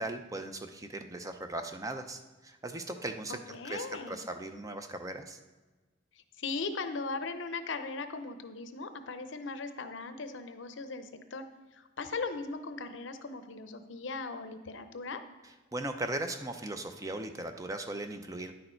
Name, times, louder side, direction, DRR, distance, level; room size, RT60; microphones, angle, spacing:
voice 1, 0.0-3.4 3.6-5.4 15.7-18.5, right 2 dB, 15° right, 7 dB, 0.5 m, -38 dB
voice 2, 3.3-4.2 6.4-11.4 11.7-15.2, left 4 dB, 65° left, 9 dB, 0.7 m, -38 dB
9.8 x 6.6 x 4.4 m, 1.2 s
head